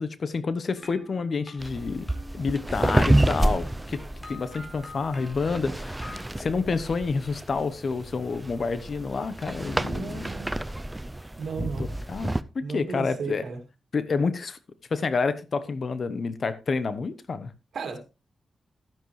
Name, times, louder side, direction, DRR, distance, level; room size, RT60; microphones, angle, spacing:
voice 1, 0.0-4.0 4.3-6.0 6.4-10.3 11.6-13.4 13.9-14.6 14.9-17.5, left 4 dB, 50° left, 1.1 m, -29 dB
sound 1, 0.8-6.2, left 2 dB, 30° left, 4.8 m, -46 dB
sound 2, 1.6-12.4, right 1 dB, 15° right, 0.6 m, -29 dB
voice 2, 9.8-10.5 11.4-11.9 12.6-13.6 17.7-18.0, right 5 dB, 70° right, 2.6 m, -34 dB
12.5 x 10.5 x 3.3 m
cardioid pair, 80°, 0 cm